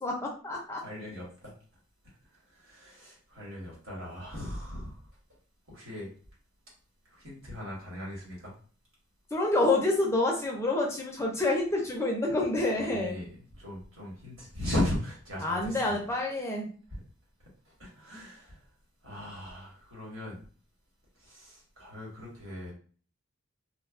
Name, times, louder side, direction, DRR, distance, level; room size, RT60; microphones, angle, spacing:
voice 1, 0.0-0.8 9.3-13.2 15.4-16.7, left 2 dB, 15° left, 0 dB, 0.4 m, -28 dB
voice 2, 0.8-1.5 2.3-5.0 5.7-6.1 7.1-8.5 12.8-16.0 16.9-17.0 17.4-18.6 19.0-20.4 21.2-22.7, left 1 dB, 85° right, -4 dB, 1.4 m, -38 dB
3.1 x 2.2 x 2.3 m, 0.42 s
head